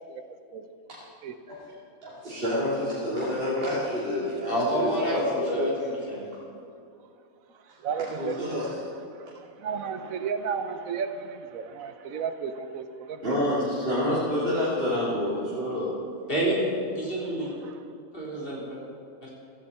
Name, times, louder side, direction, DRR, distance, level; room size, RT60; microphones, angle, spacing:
voice 1, 2.0-5.9 8.2-8.8 13.2-15.9, left 1 dB, 40° right, -9 dB, 2.9 m, -28 dB
voice 2, 4.5-5.2 5.5-6.2 16.3-16.6 17.0-17.5 18.1-18.8 19.2-19.3, right 1 dB, 40° left, -6 dB, 4.0 m, -28 dB
voice 3, 7.8-8.7 9.2-9.3 9.6-13.2 16.4-16.5 17.6-17.7, right 6 dB, 70° right, 9 dB, 1.2 m, -33 dB
16.0 x 14.5 x 4.3 m, 2.4 s
omnidirectional pair, 1.5 m